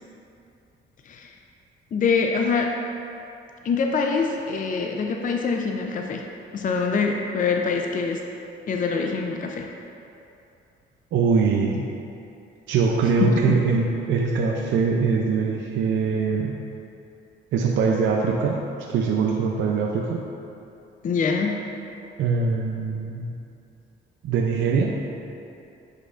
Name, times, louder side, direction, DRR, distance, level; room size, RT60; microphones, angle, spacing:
voice 1, 1.0-1.3 1.9-2.8 3.6-6.2 6.5-8.2 8.7-9.7 13.2-13.6 21.0-21.6, left 5 dB, 40° left, 2 dB, 0.5 m, -24 dB
voice 2, 11.1-11.8 12.7-16.6 17.5-18.6 18.9-20.2 22.2-23.3 24.2-24.9, right 5 dB, 75° right, 0 dB, 0.5 m, -22 dB
10.0 x 5.4 x 2.5 m, 2.7 s
cardioid pair, 90°, 20 cm